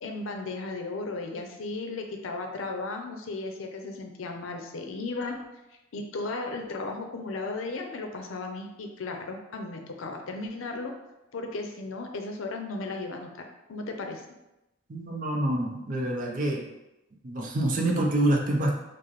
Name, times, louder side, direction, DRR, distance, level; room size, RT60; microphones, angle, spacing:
voice 1, 0.0-5.4 5.9-10.9 11.3-14.2, left 3 dB, 85° left, 4 dB, 0.5 m, -35 dB
voice 2, 14.9-16.6 17.2-18.7, right 1 dB, 45° right, 0 dB, 0.5 m, -26 dB
4.7 x 2.0 x 3.0 m, 0.94 s
head